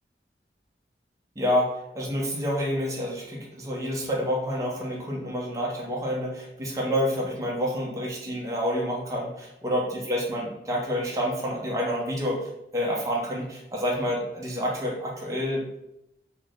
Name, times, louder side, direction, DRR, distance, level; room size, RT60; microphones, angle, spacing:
voice 1, 1.4-12.4 12.7-15.8, equal, 20° right, -3 dB, 0.6 m, -28 dB
3.2 x 2.1 x 3.8 m, 0.85 s
head